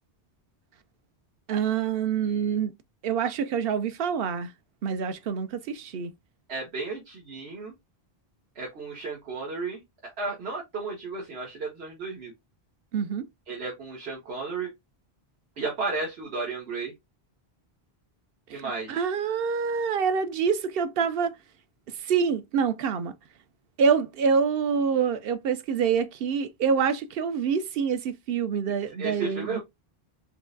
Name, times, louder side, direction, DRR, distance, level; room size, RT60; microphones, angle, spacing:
voice 1, 1.5-2.7 3.0-4.5 4.8-6.1 12.9-13.3 18.5-21.3 22.0-23.1 23.8-29.6, right 6 dB, 70° right, 0.8 m, -26 dB
voice 2, 6.5-7.7 8.5-9.8 10.2-12.3 13.5-14.7 15.6-16.9 18.5-19.0 29.0-29.6, right 3 dB, 85° right, 1.5 m, -33 dB
4.4 x 3.1 x 2.6 m
omnidirectional pair, 1.0 m